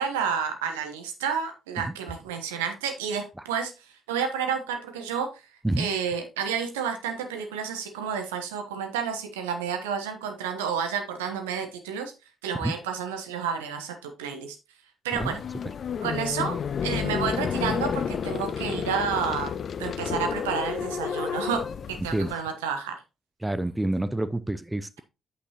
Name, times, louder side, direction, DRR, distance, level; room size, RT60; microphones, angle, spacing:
voice 1, 0.0-3.7 4.1-5.3 5.8-12.1 12.4-14.5 15.0-15.4 16.0-16.6 16.8-19.5 19.8-22.9, right 7 dB, 80° right, 1.0 m, -30 dB
sound 1, 15.2-22.3, left 7 dB, 50° left, 0.5 m, -30 dB
voice 2, 23.4-25.0, right 1 dB, 10° right, 0.6 m, -28 dB
8.4 x 8.2 x 2.9 m
figure-of-eight pair, 40°, 0 cm